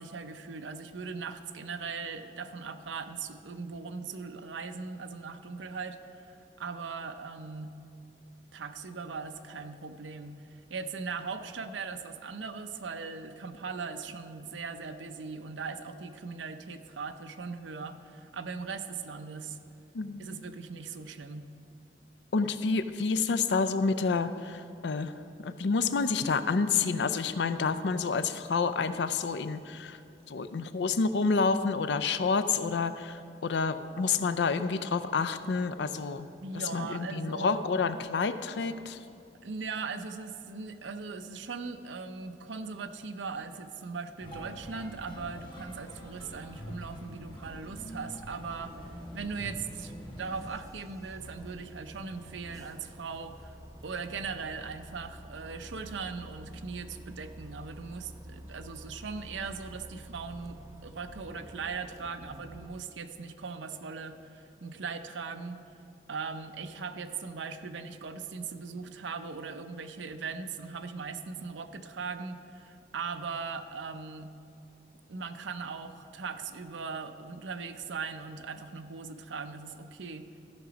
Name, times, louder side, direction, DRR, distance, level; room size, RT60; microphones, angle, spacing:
voice 1, 0.0-7.7 8.5-19.6 20.2-21.5 36.4-37.6 39.4-53.5 53.8-65.6 66.1-74.3 75.1-80.3, right 5 dB, 90° right, 9 dB, 0.6 m, -39 dB
voice 2, 22.3-25.1 25.4-30.0 30.3-36.3 36.7-39.0, left 4 dB, 75° left, 11 dB, 0.4 m, -29 dB
sound 1, 44.2-50.5, equal, 25° left, 1.2 m, -45 dB
Bus, 48.6-62.7, equal, 20° right, 0.5 m, -49 dB
14.0 x 6.0 x 5.1 m, 2.5 s
head